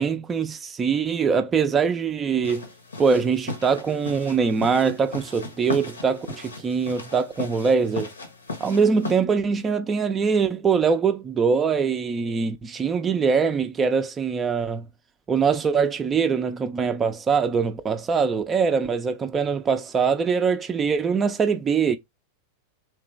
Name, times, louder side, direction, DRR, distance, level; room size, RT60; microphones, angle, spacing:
voice 1, 0.0-2.6 3.0-8.1 8.6-14.9 15.3-22.0, right 5 dB, 20° right, 0.4 m, -23 dB
sound 1, 2.4-9.2, left 3 dB, 75° left, 0.9 m, -37 dB
3.2 x 2.9 x 3.2 m
figure-of-eight pair, 90°, 0 cm